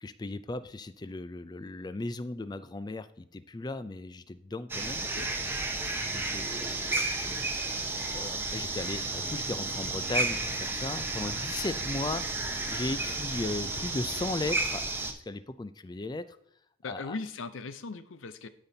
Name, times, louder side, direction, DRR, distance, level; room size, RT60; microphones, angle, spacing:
voice 1, 0.0-5.0 5.7-7.3 8.1-14.9 15.1-16.4 16.9-17.2, left 2 dB, 20° left, 13 dB, 0.4 m, -37 dB
sound 1, 4.7-15.1, right 2 dB, 10° right, 0.7 m, -32 dB
sound 2, 8.8-14.4, left 2 dB, 55° left, 1.2 m, -49 dB
voice 2, 16.8-18.5, left 3 dB, 80° left, 12 dB, 0.6 m, -38 dB
13.0 x 5.2 x 2.8 m, 0.73 s
head